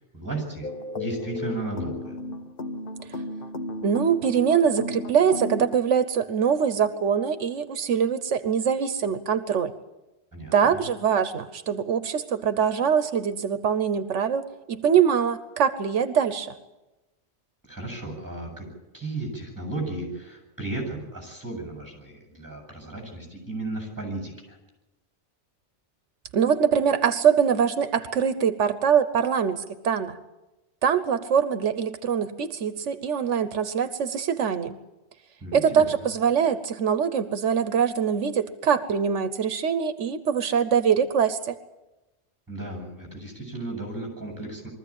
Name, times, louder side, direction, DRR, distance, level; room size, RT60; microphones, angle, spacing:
voice 1, 0.1-0.7 0.9-2.2 10.3-10.8 17.7-18.7 18.9-24.6 35.4-35.8 42.5-44.7, right 2 dB, 15° right, 0 dB, 8.1 m, -34 dB
sound 1, 0.6-5.8, left 2 dB, 50° left, 1.3 m, -34 dB
voice 2, 3.8-9.7 10.5-16.5 26.3-30.2 30.8-34.8 35.5-41.5, right 7 dB, 85° right, 11 dB, 1.3 m, -23 dB
23.0 x 14.5 x 8.9 m, 1.0 s
omnidirectional pair, 1.2 m